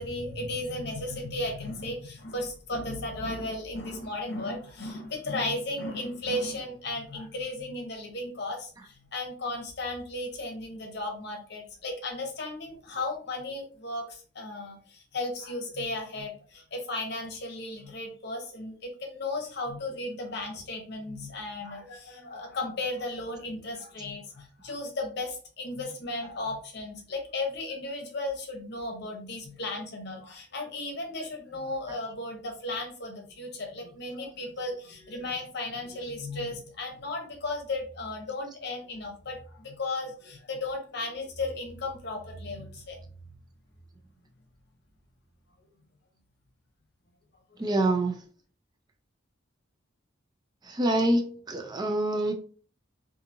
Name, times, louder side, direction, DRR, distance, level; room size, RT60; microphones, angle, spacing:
voice 1, 0.0-43.0, left 2 dB, 55° left, 2 dB, 0.8 m, -35 dB
voice 2, 47.6-48.2 50.6-52.3, right 1 dB, 20° right, 4 dB, 0.3 m, -26 dB
2.7 x 2.6 x 2.6 m, 0.42 s
head